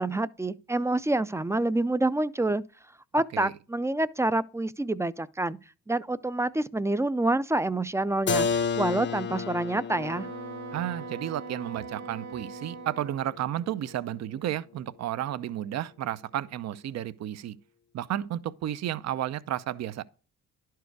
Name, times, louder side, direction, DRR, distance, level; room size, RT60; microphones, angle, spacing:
voice 1, 0.0-2.6 3.1-5.6 5.9-10.3, right 2 dB, 10° right, 0.4 m, -27 dB
Keyboard (musical), 8.3-13.9, left 5 dB, 35° left, 0.7 m, -33 dB
Wind instrument woodwind instrument, 9.9-13.3, right 5 dB, 90° right, 0.9 m, -41 dB
voice 2, 10.7-17.5 17.9-20.0, right 12 dB, 60° right, 0.6 m, -32 dB
11.0 x 4.7 x 4.6 m
cardioid pair, 90°, 30 cm